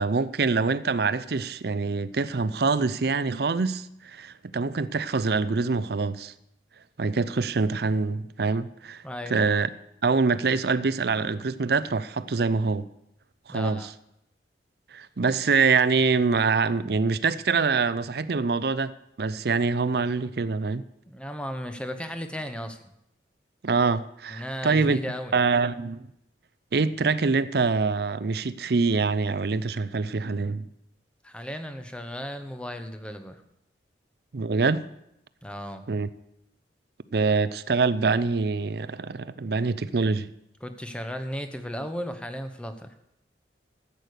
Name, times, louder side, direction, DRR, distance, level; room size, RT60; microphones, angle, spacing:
voice 1, 0.0-6.3 7.0-9.0 9.3-9.7 10.0-12.9 13.5-13.9 14.9-18.9 19.2-20.8 23.6-25.0 25.3-26.1 26.7-30.7 34.3-34.9 35.9-36.1 37.1-40.3, right 4 dB, 60° right, 0.5 m, -25 dB
voice 2, 9.0-9.4 13.5-13.9 21.1-22.9 24.3-25.4 31.2-33.4 35.4-35.8 40.6-42.9, equal, 5° left, 0.9 m, -35 dB
13.0 x 8.4 x 6.6 m
head